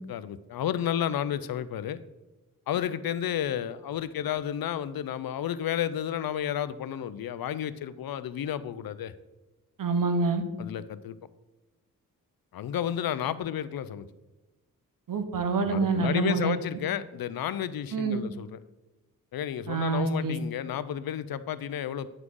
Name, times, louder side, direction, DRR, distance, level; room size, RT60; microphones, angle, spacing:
voice 1, 0.1-2.0 2.7-9.1 10.6-11.2 12.5-14.1 15.6-18.6 19.3-22.1, left 10 dB, 80° left, 15 dB, 0.5 m, -31 dB
voice 2, 9.8-10.4 15.1-16.6 17.9-18.2 19.7-20.4, right 4 dB, 65° right, 7 dB, 1.1 m, -26 dB
9.1 x 6.1 x 3.8 m, 1.1 s
wide cardioid pair, 100°, 35 cm